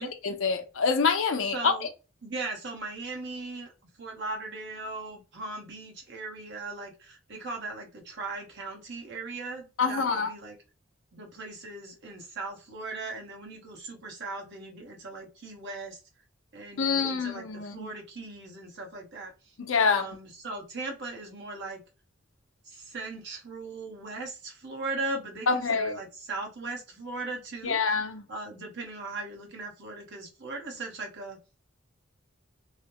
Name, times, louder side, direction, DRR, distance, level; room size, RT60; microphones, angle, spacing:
voice 1, 0.2-1.7 9.8-10.3 16.8-17.9 19.6-20.1 25.5-26.0 27.6-28.2, left 5 dB, 75° left, 0.6 m, -26 dB
voice 2, 1.5-1.9 2.2-3.7 4.0-10.5 11.1-16.0 16.5-19.3 19.8-21.8 22.7-27.8 28.3-31.4, right 3 dB, 60° right, 1.0 m, -38 dB
3.0 x 2.1 x 2.9 m
head